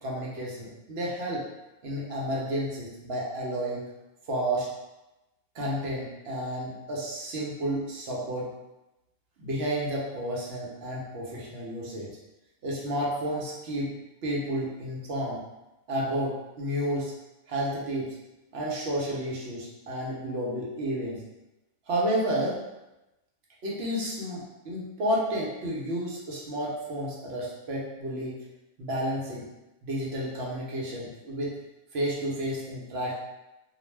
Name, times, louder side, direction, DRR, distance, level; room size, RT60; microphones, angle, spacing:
voice 1, 0.0-1.5 1.8-3.8 4.3-4.7 5.5-8.5 9.4-12.1 12.6-13.9 14.2-15.4 15.9-17.1 17.5-18.2 18.5-21.2 21.9-22.6 23.6-28.4 28.8-29.5 29.8-31.6 31.9-33.1, right 1 dB, 65° right, -4 dB, 0.8 m, -31 dB
2.3 x 2.1 x 3.1 m, 0.99 s
omnidirectional pair, 1.2 m